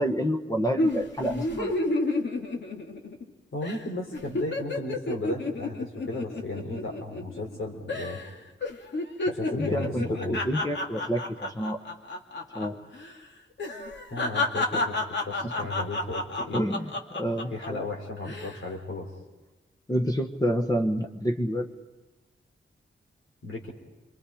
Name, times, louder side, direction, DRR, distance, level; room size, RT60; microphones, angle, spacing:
voice 1, 0.0-1.9 9.5-11.8 12.5-12.8 15.4-15.5 16.5-17.8 19.9-21.7, equal, 20° left, 3 dB, 1.3 m, -28 dB
sound 1, 0.8-3.3 3.6-3.8 4.1-7.6 7.9-8.3 8.6-12.7 12.9-13.1 13.6-17.7 18.2-18.6, left 2 dB, 60° left, 2.3 m, -30 dB
voice 2, 3.5-8.3 9.3-10.4 14.1-16.6 17.5-19.1 23.4-23.7, left 2 dB, 85° left, 0 dB, 3.8 m, -35 dB
29.5 x 23.5 x 5.1 m, 1.2 s
wide cardioid pair, 105°, 20 cm